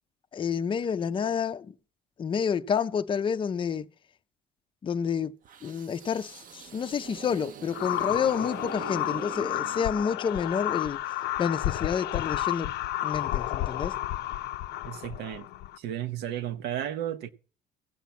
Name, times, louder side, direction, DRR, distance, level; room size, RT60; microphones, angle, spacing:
voice 1, 0.3-1.7 2.2-3.9 4.8-5.3 5.6-11.0 11.4-12.7 13.0-14.0, left 7 dB, 30° left, 0.5 m, -29 dB
sound 1, 5.4-10.5, right 8 dB, 55° right, 0.8 m, -44 dB
sound 2, 7.7-15.8, left 14 dB, 75° left, 0.5 m, -31 dB
voice 2, 14.9-15.5 15.8-17.3, right 11 dB, 80° right, 0.9 m, -33 dB
15.0 x 8.2 x 5.9 m
cardioid pair, 110°, 17 cm